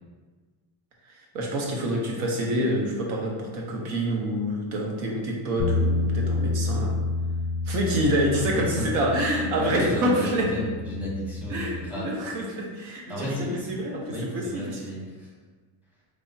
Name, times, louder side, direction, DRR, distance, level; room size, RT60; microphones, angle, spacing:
voice 1, 1.1-7.0 7.7-10.5 11.5-14.8, equal, 85° right, -1 dB, 0.8 m, -27 dB
sound 1, 5.6-11.9, left 2 dB, 35° left, 0.4 m, -29 dB
voice 2, 8.4-8.9 9.6-12.1 13.1-15.3, left 1 dB, 5° right, -6 dB, 0.7 m, -33 dB
3.3 x 2.0 x 2.6 m, 1.4 s
cardioid pair, 120°, 48 cm